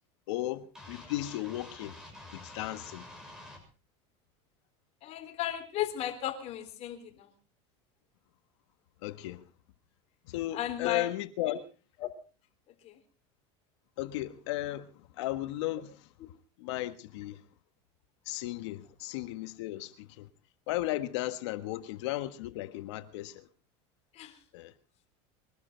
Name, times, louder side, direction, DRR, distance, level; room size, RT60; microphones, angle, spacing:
voice 1, 0.3-1.9 2.3-3.1 9.0-9.4 10.3-11.6 14.0-14.9 15.2-15.9 16.6-17.4 18.3-20.3 20.7-23.5 24.5-24.7, left 15 dB, 80° left, 1.5 m, -35 dB
sound 1, 0.8-3.6, left 1 dB, 5° right, 6.5 m, -48 dB
voice 2, 5.0-7.3 10.5-11.1 11.4-11.6 12.0-12.1 12.8-13.0 24.1-24.4, left 12 dB, 50° left, 3.7 m, -35 dB
23.0 x 12.5 x 4.5 m
supercardioid pair, 120°, 15 cm